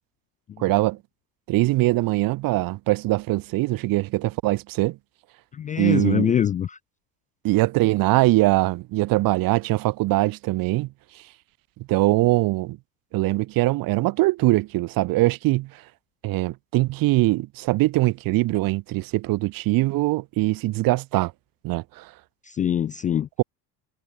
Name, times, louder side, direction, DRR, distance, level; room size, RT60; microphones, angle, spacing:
voice 1, 0.6-1.0 1.5-5.0 5.8-6.3 7.4-10.9 11.9-12.8 13.1-15.8 16.2-21.3 21.6-22.1, right 19 dB, 50° right, 2.2 m, -22 dB
voice 2, 5.6-6.8 22.5-23.3, left 9 dB, 20° left, 0.4 m, -23 dB
cardioid pair, 165°, 44 cm